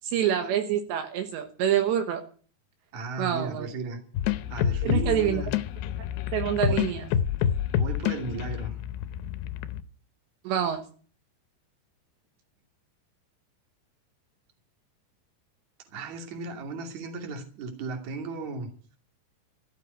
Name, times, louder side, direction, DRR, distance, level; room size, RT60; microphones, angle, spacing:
voice 1, 0.0-2.2 3.2-3.7 4.8-5.4 6.3-7.1 10.5-10.8, right 9 dB, 80° right, 6 dB, 3.5 m, -26 dB
voice 2, 2.9-4.0 4.5-5.5 6.6-6.8 7.7-8.8 15.9-18.7, right 3 dB, 45° right, 4 dB, 3.5 m, -35 dB
sound 1, 4.2-9.8, left 9 dB, 75° left, 2.7 m, -28 dB
14.5 x 8.2 x 9.5 m, 0.42 s
omnidirectional pair, 5.2 m